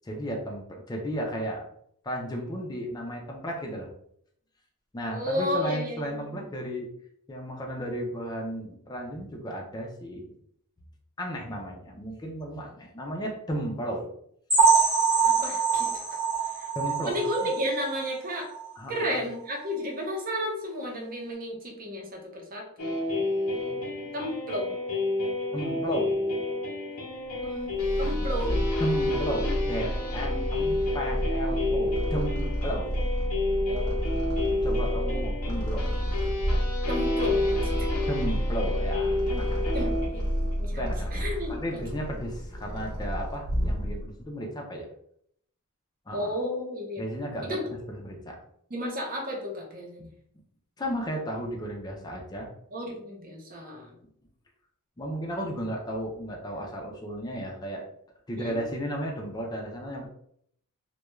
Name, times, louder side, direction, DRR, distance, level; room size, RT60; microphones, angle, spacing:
voice 1, 0.0-1.7 2.0-3.9 4.9-6.9 7.3-10.3 11.2-14.1 16.8-17.5 18.8-19.2 23.6-24.2 25.5-26.2 28.8-32.9 34.6-35.9 38.1-39.9 40.7-44.9 46.1-46.3 47.0-48.4 50.8-52.5 55.0-57.8 58.3-60.1, equal, 20° left, 0 dB, 0.4 m, -34 dB
voice 2, 5.1-6.4 15.3-16.0 16.6-16.7 17.0-18.5 18.9-22.9 24.1-24.7 27.4-28.5 30.3-30.5 33.7-33.9 34.5-35.2 36.9-37.9 39.7-40.2 40.6-40.7 41.1-41.6 46.1-47.0 47.5-47.6 48.7-50.1 52.7-53.9 58.3-58.6, equal, 40° right, -1 dB, 0.7 m, -33 dB
sound 1, 14.5-18.1 18.5-18.7 19.0-19.1 19.6-19.7, right 5 dB, 15° right, 1.1 m, -24 dB
sound 2, 22.8-40.6, left 2 dB, 80° left, 0.7 m, -30 dB
Purr, 27.4-44.2, equal, 65° right, 1.0 m, -30 dB
2.3 x 2.2 x 3.0 m, 0.68 s
head